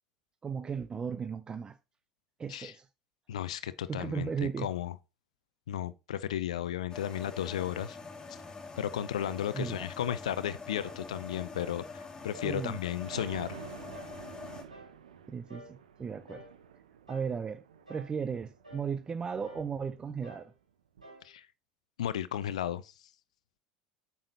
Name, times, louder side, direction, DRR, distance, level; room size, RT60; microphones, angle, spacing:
voice 1, 0.4-1.8 2.4-2.8 3.9-4.7 9.5-9.9 12.4-12.8 15.3-16.4 17.1-17.6 17.9-20.5, right 6 dB, 25° right, 0.6 m, -36 dB
voice 2, 3.3-5.0 5.7-8.0 8.3-8.4 8.8-13.6 21.2-21.5 22.0-22.9, left 10 dB, 65° left, 0.6 m, -34 dB
sound 1, 6.9-14.6, left 4 dB, 20° left, 2.5 m, -45 dB
sound 2, 9.2-9.5 10.0-10.2 10.8-11.1 11.5-11.8 12.3-12.6 13.1-13.4 13.9-14.2 14.7-15.0 15.5-15.8 16.3-16.6 17.1-17.4 17.9-18.2 18.6-18.9 19.4-19.7 20.2-20.5 21.0-21.3, equal, 85° right, 3.8 m, -51 dB
Thunder, 12.3-20.6 21.0-21.1, right 8 dB, 70° right, 0.9 m, -51 dB
8.7 x 7.0 x 2.8 m
figure-of-eight pair, 70°, 4 cm